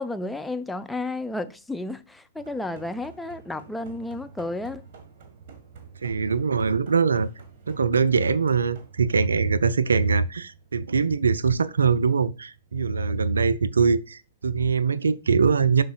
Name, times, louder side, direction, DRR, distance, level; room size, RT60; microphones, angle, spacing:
voice 1, 0.0-4.8, left 2 dB, 5° left, 0.4 m, -32 dB
sound 1, 2.4-14.2, right 5 dB, 45° right, 1.4 m, -50 dB
voice 2, 6.0-7.3 7.7-15.8, right 5 dB, 70° right, 0.3 m, -22 dB
11.0 x 3.9 x 2.3 m
figure-of-eight pair, 110°, 0 cm